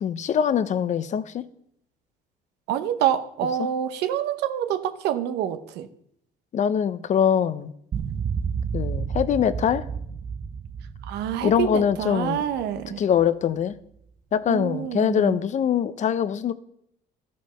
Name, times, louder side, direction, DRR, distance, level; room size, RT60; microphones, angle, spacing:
voice 1, 0.0-1.5 3.6-3.7 6.5-7.7 8.7-9.9 11.4-12.4 13.0-13.8 14.3-16.5, left 8 dB, 45° left, 0.6 m, -23 dB
voice 2, 2.7-5.9 11.1-13.0 14.5-15.4, right 10 dB, 85° right, 0.8 m, -27 dB
sound 1, 7.9-13.3, right 6 dB, 35° right, 0.5 m, -31 dB
12.5 x 5.3 x 5.7 m
cardioid pair, 110°, 17 cm